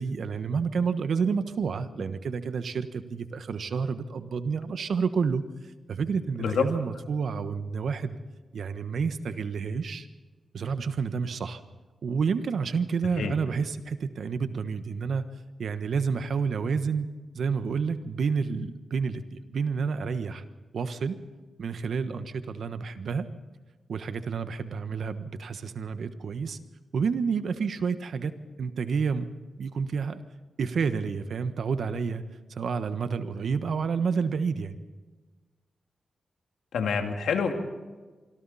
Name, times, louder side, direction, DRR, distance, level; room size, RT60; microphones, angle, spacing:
voice 1, 0.0-5.4 5.9-8.2 8.5-10.1 10.5-11.6 12.0-15.2 15.6-17.1 17.3-20.4 20.7-21.2 21.6-23.3 23.9-26.6 26.9-28.3 28.6-29.3 29.6-30.2 30.6-32.2 32.5-34.8, right 5 dB, 75° right, 10 dB, 1.3 m, -29 dB
voice 2, 36.7-37.5, left 6 dB, 90° left, 4 dB, 2.3 m, -26 dB
25.5 x 24.5 x 4.3 m, 1.3 s
cardioid pair, 55°, 0 cm